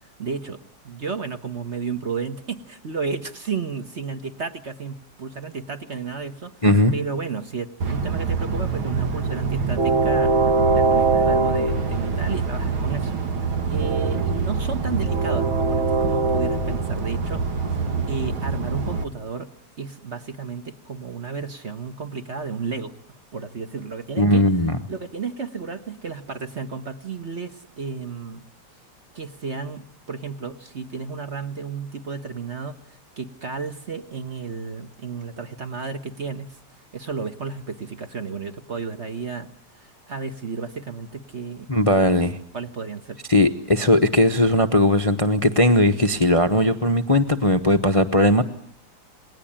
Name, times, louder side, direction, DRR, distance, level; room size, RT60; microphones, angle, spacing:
voice 1, 0.2-6.5 6.9-10.4 10.7-17.8 18.1-19.5 19.8-24.6 24.9-28.4 29.1-36.6 36.9-39.5 39.8-41.7 42.5-43.2, right 5 dB, 35° right, 8 dB, 1.4 m, -32 dB
voice 2, 6.6-6.9 24.2-24.8 41.7-42.4 43.3-48.4, left 1 dB, 25° left, 9 dB, 0.7 m, -18 dB
Train, 7.8-19.0, right 4 dB, 70° right, 2.6 m, -23 dB
28.5 x 21.0 x 8.9 m, 0.62 s
omnidirectional pair, 2.4 m